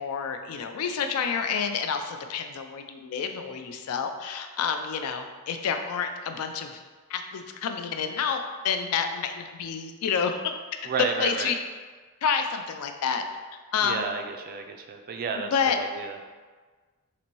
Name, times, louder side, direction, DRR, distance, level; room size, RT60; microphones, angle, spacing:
voice 1, 0.0-6.8 7.1-10.5 10.8-11.5 12.2-13.2 13.7-14.1 15.4-15.8, left 6 dB, 75° left, 6 dB, 0.3 m, -29 dB
voice 2, 10.8-11.5 13.8-16.2, right 5 dB, 40° right, 4 dB, 0.3 m, -32 dB
4.1 x 2.5 x 3.0 m, 1.4 s
head